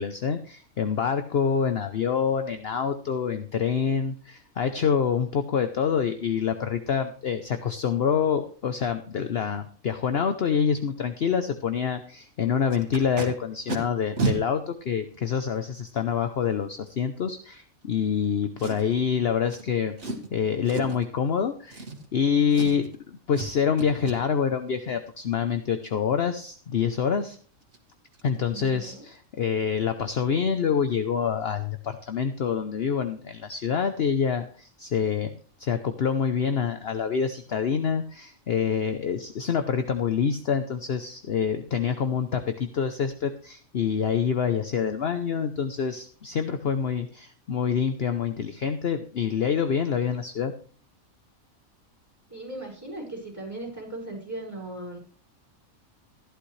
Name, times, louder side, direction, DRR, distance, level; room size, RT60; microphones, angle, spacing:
voice 1, 0.0-19.9 20.3-21.9 22.1-27.4 28.2-50.5, left 7 dB, 55° left, 9 dB, 0.9 m, -26 dB
Packing tape duct tape, 12.7-13.3 13.7-13.8 14.2-14.4 15.1-15.2 18.6-19.0 19.5-19.6 20.0-20.3 20.7-21.0 21.7-22.2 22.5-23.0 23.3-23.5 23.8-24.2 27.2-27.3 27.6-27.8 28.1-28.3 28.6-28.8 29.1-29.2, right 3 dB, 55° right, 2.2 m, -31 dB
voice 2, 28.5-29.1 52.3-55.0, right 2 dB, 10° right, -2 dB, 5.6 m, -38 dB
14.5 x 11.5 x 3.2 m, 0.42 s
omnidirectional pair, 1.4 m